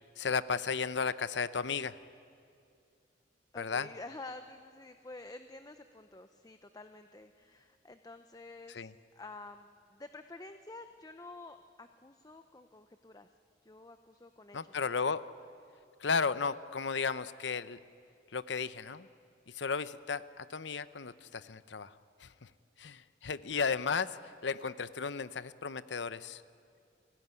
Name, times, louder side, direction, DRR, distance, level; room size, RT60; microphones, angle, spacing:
voice 1, 0.2-1.9 3.6-3.9 8.7-8.9 14.5-15.2 16.0-17.8 18.3-19.1 19.5-21.9 22.2-22.5 22.8-24.2 24.4-26.4, left 5 dB, 75° left, 15 dB, 0.8 m, -34 dB
voice 2, 3.5-13.3 13.6-14.8, left 2 dB, 20° left, 8 dB, 0.7 m, -49 dB
29.5 x 18.0 x 9.6 m, 2.4 s
head